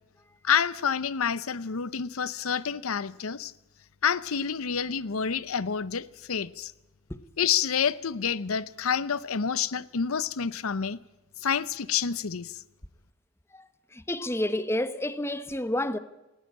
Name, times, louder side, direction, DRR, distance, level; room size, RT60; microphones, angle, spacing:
voice 1, 0.4-3.5 4.0-6.7 7.4-11.0 11.4-12.6, left 7 dB, 80° left, 0.7 m, -28 dB
voice 2, 13.5-16.0, left 1 dB, 10° left, 1.0 m, -30 dB
19.5 x 17.0 x 8.7 m
head